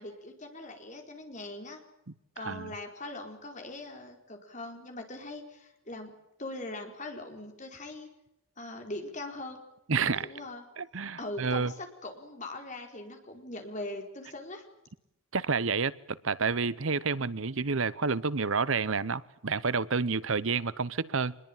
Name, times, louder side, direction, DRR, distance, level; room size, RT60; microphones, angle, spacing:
voice 1, 0.0-1.8 2.3-6.1 6.4-8.1 8.6-9.6 10.2-10.6 11.2-14.6, left 2 dB, 35° left, 4.8 m, -41 dB
voice 2, 9.9-10.3 10.8-11.7 15.3-21.4, right 4 dB, 75° right, 0.9 m, -29 dB
25.5 x 21.5 x 9.0 m
head